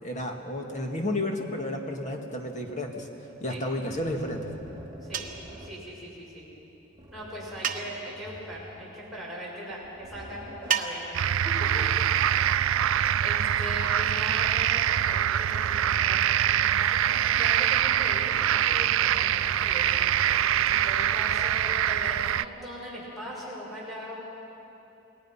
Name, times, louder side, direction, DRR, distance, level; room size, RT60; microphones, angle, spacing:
voice 1, 0.0-3.1 3.4-4.5, left 1 dB, 35° left, 2 dB, 2.0 m, -31 dB
sound 1, 3.8-5.9 6.9-9.0 9.6-10.9 11.7-13.2 14.5-16.9 17.3-17.4 18.7-21.5, equal, 20° right, 2.1 m, -48 dB
voice 2, 5.0-5.3 5.6-6.5 7.1-11.8 13.2-20.1 20.7-24.2, equal, ahead, -8 dB, 6.9 m, -40 dB
sound 2, 5.1-5.5 7.6-8.2 10.7-11.3, right 8 dB, 40° right, 1.0 m, -31 dB
sound 3, 11.1-22.4, right 10 dB, 70° right, 0.4 m, -24 dB
28.5 x 20.0 x 5.8 m, 2.9 s
head